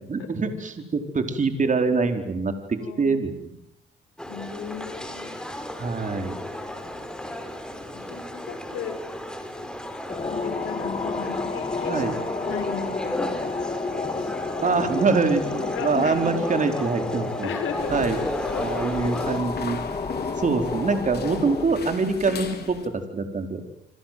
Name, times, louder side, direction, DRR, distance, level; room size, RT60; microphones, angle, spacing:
voice 1, 0.1-3.5 5.8-6.3 11.9-12.1 14.6-17.5 17.9-18.2 18.6-19.8 20.4-23.6, right 4 dB, 40° right, 6 dB, 4.8 m, -24 dB
voice 2, 1.8-2.1 2.8-3.2 4.3-5.3 7.9-9.0 9.6-9.7 10.2-12.0 12.4-13.3 14.1-14.3 15.7-16.4 17.4-18.7, left 7 dB, 85° left, 7 dB, 6.0 m, -36 dB
sound 1, 4.2-19.4, left 1 dB, 5° left, 5.6 m, -35 dB
sound 2, 10.1-21.6, left 4 dB, 25° left, 3.6 m, -31 dB
sound 3, 17.8-22.9, left 6 dB, 55° left, 4.5 m, -36 dB
28.5 x 26.0 x 7.9 m, 0.80 s
cardioid pair, 90°, 20 cm